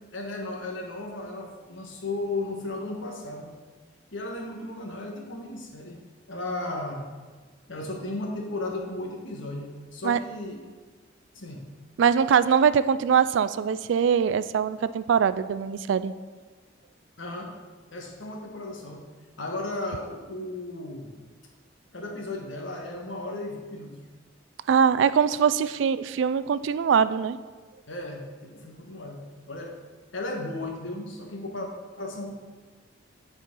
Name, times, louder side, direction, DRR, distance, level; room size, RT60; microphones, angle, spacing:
voice 1, 0.1-3.5 4.1-6.0 6.3-7.1 7.7-10.6 11.3-11.6 17.2-17.6 17.9-19.0 19.4-21.1 21.9-24.0 27.9-29.8 30.1-31.7 32.0-32.3, left 2 dB, 80° left, 1 dB, 1.4 m, -35 dB
voice 2, 12.0-16.1 24.7-27.4, right 7 dB, 70° right, 15 dB, 0.3 m, -22 dB
8.6 x 4.4 x 5.4 m, 1.4 s
head